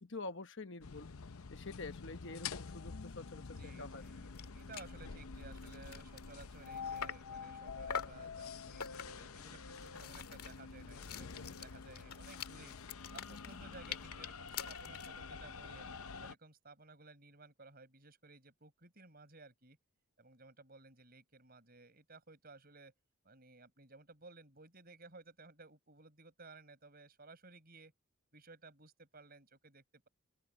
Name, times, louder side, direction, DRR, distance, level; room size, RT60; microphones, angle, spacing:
voice 1, 0.0-1.1 1.5-4.0, left 3 dB, 55° left, 1.1 m, -47 dB
sound 1, 0.8-16.3, left 5 dB, 75° left, 0.7 m, -48 dB
voice 2, 3.3-12.8 13.1-15.9 16.2-19.8 20.2-22.9 23.2-27.9 28.3-30.1, right 3 dB, 40° right, 6.8 m, -57 dB
sound 2, 4.1-4.2 4.3-4.5 4.7-5.0 5.4-7.4 7.9-8.3 8.8-9.3 9.7-15.2, left 7 dB, 90° left, 2.0 m, -45 dB
open air
head